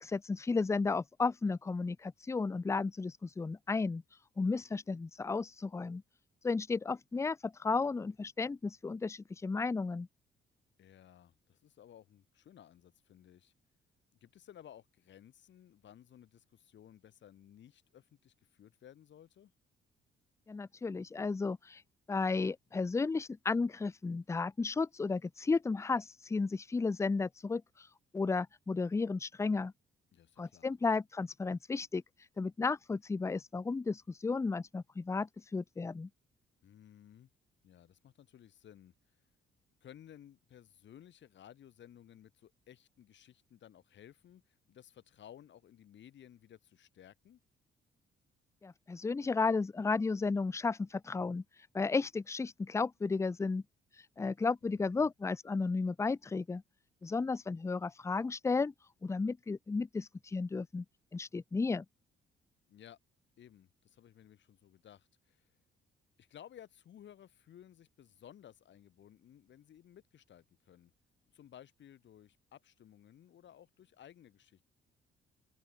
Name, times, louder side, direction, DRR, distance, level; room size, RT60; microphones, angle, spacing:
voice 1, 0.0-4.0 4.4-6.0 6.4-10.1 20.5-21.8 22.1-27.9 28.1-29.7 30.4-32.0 32.4-36.1 48.6-51.4 51.7-53.6 54.2-56.6 57.0-58.7 59.0-60.8 61.1-61.8, left 4 dB, 15° left, 0.4 m, -33 dB
voice 2, 10.8-13.5 14.2-19.5 30.1-30.7 36.6-37.3 37.6-39.0 39.8-47.4 54.6-55.1 62.7-63.0 63.4-65.5 66.2-70.9 71.3-74.6, left 10 dB, 65° left, 5.4 m, -57 dB
cardioid pair, 90°, 20 cm